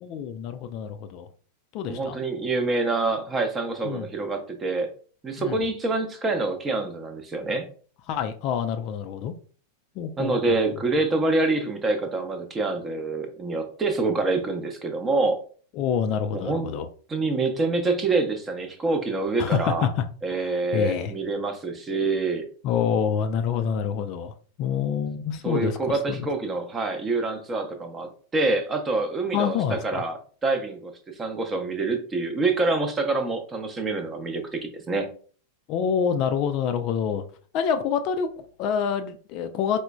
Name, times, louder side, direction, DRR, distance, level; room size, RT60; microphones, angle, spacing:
voice 1, 0.0-1.3 1.7-2.2 3.8-4.1 5.4-5.6 8.1-9.3 10.0-10.6 15.8-16.9 19.4-20.0 20.3-21.1 22.6-26.3 29.3-30.0 35.7-37.2 37.5-39.8, left 7 dB, 40° left, 0.3 m, -27 dB
voice 2, 1.9-4.9 5.2-7.7 10.2-15.4 16.3-16.7 17.1-19.9 20.2-22.5 25.4-30.9 31.2-35.1, right 3 dB, 20° right, 0.6 m, -26 dB
4.7 x 2.1 x 2.3 m
figure-of-eight pair, 90°, 0 cm